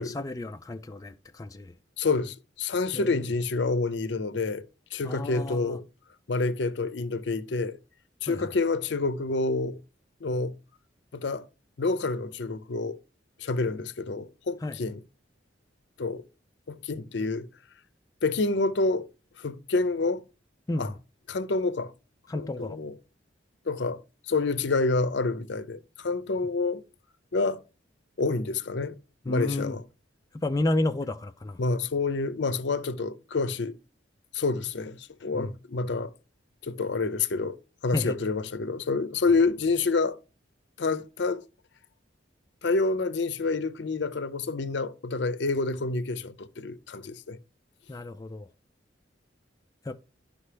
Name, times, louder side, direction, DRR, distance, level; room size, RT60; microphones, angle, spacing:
voice 1, 0.0-1.7 2.9-3.1 5.0-5.8 8.3-8.4 14.6-14.7 20.7-20.9 22.3-22.8 29.3-29.8 30.4-31.6 35.3-35.5 37.9-38.1 47.9-48.5 49.9-50.0, left 2 dB, 20° left, 0.3 m, -31 dB
voice 2, 2.0-4.6 4.9-5.8 6.3-7.8 8.2-9.8 10.2-10.5 11.1-11.5 11.8-13.0 13.4-15.0 16.0-16.2 16.7-17.5 18.2-19.1 19.4-20.2 20.8-20.9 21.3-21.9 22.3-23.0 23.7-24.0 24.3-26.8 27.3-27.6 28.2-29.0 29.3-29.8 31.6-33.7 34.3-36.1 36.6-37.6 37.8-40.2 40.8-41.4 42.6-47.4, left 3 dB, 65° left, 0.6 m, -28 dB
11.5 x 5.2 x 3.3 m
head